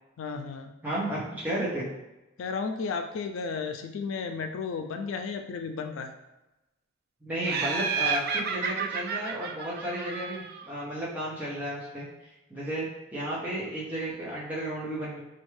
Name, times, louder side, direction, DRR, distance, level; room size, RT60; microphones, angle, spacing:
voice 1, 0.2-0.7 2.4-6.1, left 5 dB, 90° left, 6 dB, 0.4 m, -33 dB
voice 2, 0.8-1.9 7.2-15.2, right 1 dB, 10° right, -8 dB, 0.7 m, -33 dB
Laughter, 7.4-10.7, right 5 dB, 55° right, 0.3 m, -31 dB
4.3 x 2.3 x 3.1 m, 1.0 s
head